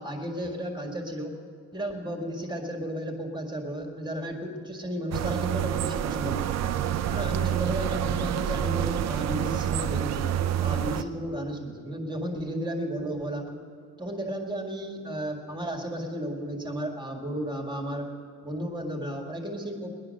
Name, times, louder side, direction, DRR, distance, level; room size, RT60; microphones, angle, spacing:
voice 1, 0.0-1.3 1.7-6.6 7.1-10.3 10.6-13.6 14.0-18.1 18.4-20.0, equal, 15° right, 2 dB, 1.8 m, -33 dB
sound 1, 5.1-11.0, right 10 dB, 60° right, 0.6 m, -28 dB
19.5 x 10.5 x 6.4 m, 2.2 s
cardioid pair, 135°, 30 cm